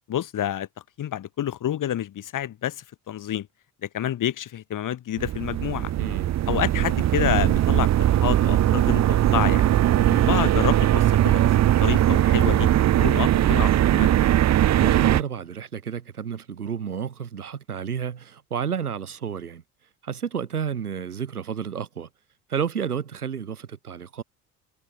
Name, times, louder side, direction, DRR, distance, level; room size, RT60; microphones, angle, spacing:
voice 1, 0.1-0.7 1.0-3.5 3.8-5.9 6.5-9.6 10.2-12.7 13.0-14.1, left 11 dB, 45° left, 5.0 m, -28 dB
sound 1, 5.2-15.2, right 12 dB, 35° right, 1.1 m, -20 dB
voice 2, 6.0-6.4 10.0-10.3 14.8-19.6 20.0-22.1 22.5-24.2, right 7 dB, 80° right, 6.4 m, -31 dB
figure-of-eight pair, 60°, 44 cm